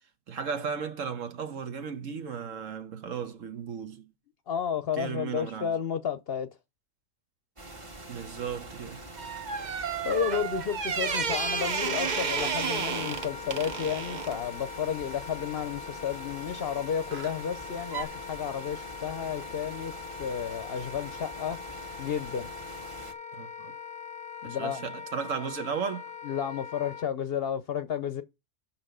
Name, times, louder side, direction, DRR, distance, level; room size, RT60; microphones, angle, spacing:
voice 1, 0.3-4.0 5.0-5.7 8.1-9.0 23.3-23.7 24.4-26.0, right 6 dB, 70° right, 1.3 m, -35 dB
voice 2, 4.5-6.5 10.0-19.9 20.2-21.6 22.0-22.5 24.4-24.8 26.2-28.2, left 8 dB, 55° left, 0.8 m, -32 dB
sound 1, 7.6-23.1, right 2 dB, 25° right, 1.5 m, -45 dB
sound 2, 9.2-14.4 17.1-17.4 17.9-18.0, right 6 dB, 45° right, 0.6 m, -31 dB
Wind instrument woodwind instrument, 11.0-27.1, left 7 dB, 10° left, 0.4 m, -42 dB
5.8 x 5.5 x 6.7 m
omnidirectional pair, 1.4 m